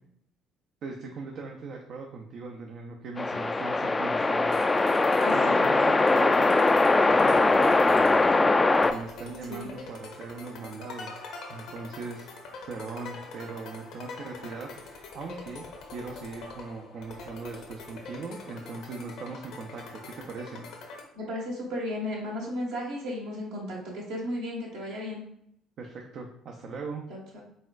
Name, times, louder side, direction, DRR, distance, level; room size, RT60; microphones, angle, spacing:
voice 1, 0.8-4.6 5.3-6.5 7.0-11.1 11.5-12.3 12.7-15.7 15.9-20.7 25.8-27.0, right 4 dB, 60° right, 1 dB, 0.5 m, -40 dB
sound 1, 3.2-8.9, left 3 dB, 25° left, 0.3 m, -21 dB
sound 2, 4.5-21.0, left 3 dB, 70° left, 0.8 m, -44 dB
voice 2, 5.2-5.6 9.5-9.7 21.1-25.2 27.1-27.4, left 1 dB, 75° right, -3 dB, 1.4 m, -34 dB
4.1 x 3.7 x 2.4 m, 0.73 s
hypercardioid pair, 55°, 0 cm